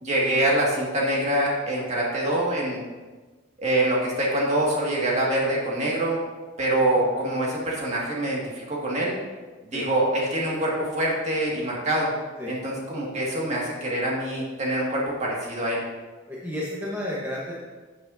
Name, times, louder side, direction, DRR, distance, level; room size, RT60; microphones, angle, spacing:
voice 1, 0.0-2.8 3.6-6.2 6.6-9.2 9.7-12.1 12.5-15.8, right 1 dB, 35° right, -4 dB, 1.9 m, -25 dB
voice 2, 16.3-17.5, left 1 dB, 10° right, -6 dB, 1.1 m, -31 dB
11.0 x 8.4 x 2.7 m, 1.3 s
head